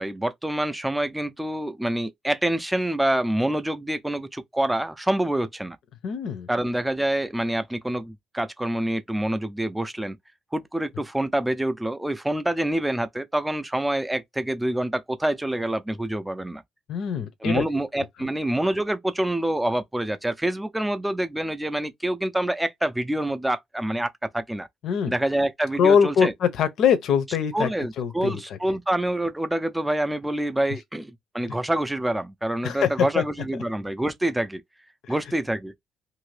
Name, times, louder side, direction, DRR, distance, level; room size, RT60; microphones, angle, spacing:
voice 1, 0.0-5.8 6.5-10.2 10.5-16.6 17.4-24.7 25.1-26.3 27.5-34.6 35.1-35.7, right 1 dB, 5° right, 0.4 m, -26 dB
voice 2, 6.0-6.5 16.9-17.6 24.8-25.1 25.8-27.7 28.0-28.4 31.5-31.6 32.6-32.9 33.1-33.2 35.1-35.2, left 7 dB, 65° left, 0.6 m, -22 dB
2.8 x 2.6 x 3.2 m
cardioid pair, 125°, 0 cm